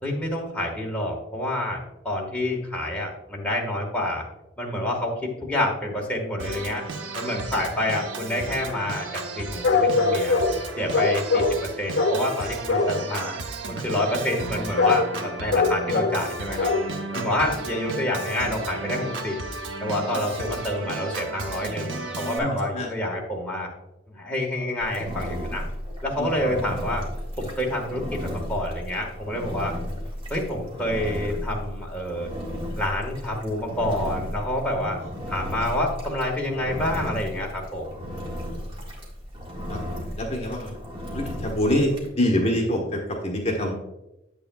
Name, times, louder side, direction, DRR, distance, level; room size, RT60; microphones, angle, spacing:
voice 1, 0.0-4.2 4.6-6.8 7.1-9.1 9.3-10.4 10.8-13.4 13.7-16.7 17.1-19.4 19.8-23.7 24.1-25.6 26.0-27.1 27.4-29.7 30.3-32.3 32.8-35.0 35.3-37.9, left 1 dB, 5° left, -2 dB, 1.5 m, -28 dB
Organ, 6.4-22.4, right 3 dB, 85° right, 0.9 m, -34 dB
sound 1, 9.6-10.6 10.9-11.6 12.0-12.3 12.7-13.0 14.8-15.1 15.5-16.3 16.6-16.9 17.4-17.5, left 4 dB, 60° left, 0.6 m, -21 dB
voice 2, 22.4-22.9 26.2-26.3 34.8-35.1 39.7-39.8 40.2-40.7 41.1-43.7, left 1 dB, 30° left, -1 dB, 1.3 m, -25 dB
Engine, 24.8-42.1, equal, 30° right, 1.7 m, -35 dB
8.6 x 8.1 x 2.3 m, 0.93 s
head